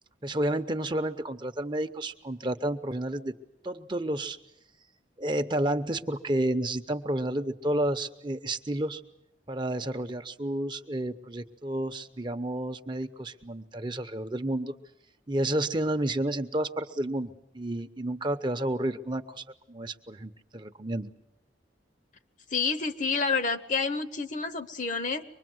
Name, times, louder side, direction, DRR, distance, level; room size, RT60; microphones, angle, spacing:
voice 1, 0.2-3.4 3.6-4.4 5.2-9.0 9.5-14.7 15.3-21.1, right 1 dB, 25° right, 8 dB, 0.8 m, -31 dB
voice 2, 22.5-25.2, left 4 dB, 45° left, 10 dB, 1.0 m, -29 dB
24.5 x 21.0 x 7.8 m, 0.85 s
head